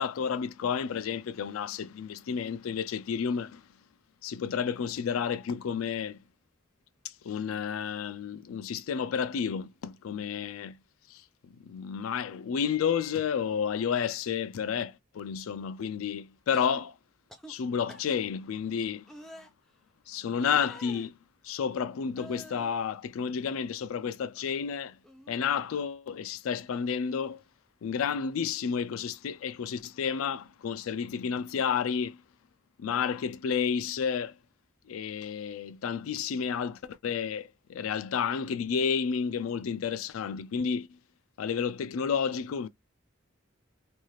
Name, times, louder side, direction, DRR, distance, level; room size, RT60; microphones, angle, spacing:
voice 1, 0.0-3.6 4.2-6.2 7.2-10.8 11.1-11.2 11.6-16.9 17.5-19.0 20.1-21.1 21.4-25.0 25.3-27.4 27.8-32.2 32.8-34.3 34.9-41.0 41.4-42.7, left 7 dB, 90° left, 0.4 m, -31 dB
sound 1, 16.5-16.8 17.3-17.5 17.9-18.2 19.1-19.5 20.4-21.1 22.1-22.7 23.2-24.1 24.3-24.6 25.0-25.8 27.1-27.3, equal, ahead, 0.4 m, -49 dB
2.7 x 2.4 x 3.0 m
head